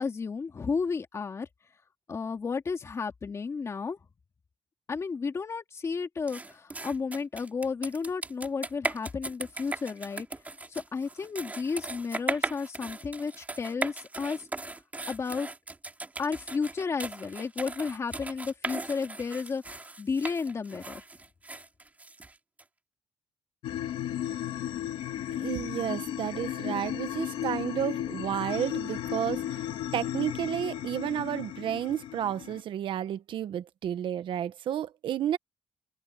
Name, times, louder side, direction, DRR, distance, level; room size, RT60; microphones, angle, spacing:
voice 1, 0.0-1.5 2.1-4.0 4.9-10.3 10.7-14.5 15.1-15.5 16.2-21.0, left 5 dB, 30° left, 2.5 m, -32 dB
sound 1, 6.3-22.6, right 2 dB, 15° right, 2.7 m, -38 dB
sound 2, 23.6-32.6, left 11 dB, 80° left, 2.9 m, -34 dB
voice 2, 25.3-29.6 29.9-35.4, right 10 dB, 65° right, 1.2 m, -32 dB
open air
cardioid pair, 130°, 9 cm